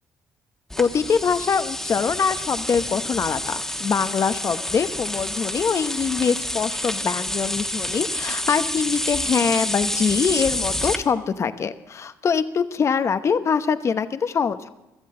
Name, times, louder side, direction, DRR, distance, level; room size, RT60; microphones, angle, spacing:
sound 1, 0.7-11.0, left 1 dB, 5° left, 1.4 m, -28 dB
voice 1, 0.8-14.7, left 6 dB, 45° left, 11 dB, 0.9 m, -23 dB
17.0 x 13.0 x 3.8 m, 1.0 s
supercardioid pair, 80°, 7 cm